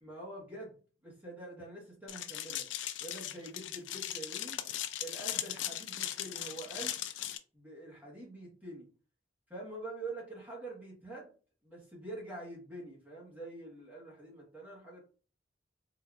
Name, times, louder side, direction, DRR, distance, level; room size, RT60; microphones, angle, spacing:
voice 1, 0.0-0.8 1.0-2.7 3.0-4.6 5.0-7.0 7.5-8.8 9.5-11.3 11.6-15.0, right 2 dB, 10° right, -4 dB, 1.2 m, -45 dB
sound 1, 2.1-7.4, left 12 dB, 85° left, 0.3 m, -38 dB
3.7 x 2.6 x 2.3 m, 0.38 s
head